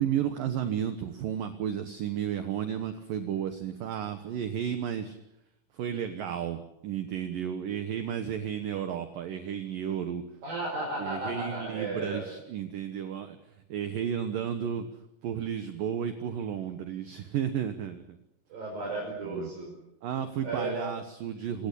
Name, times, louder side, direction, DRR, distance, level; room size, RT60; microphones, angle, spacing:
voice 1, 0.0-5.2 5.7-10.2 11.0-13.4 13.7-14.9 15.2-18.2 19.2-19.5 20.0-21.7, right 9 dB, 70° right, 9 dB, 2.2 m, -33 dB
voice 2, 10.4-12.2 18.5-19.8 20.4-20.9, right 2 dB, 50° right, -1 dB, 6.7 m, -34 dB
27.5 x 17.5 x 8.3 m, 0.84 s
omnidirectional pair, 5.6 m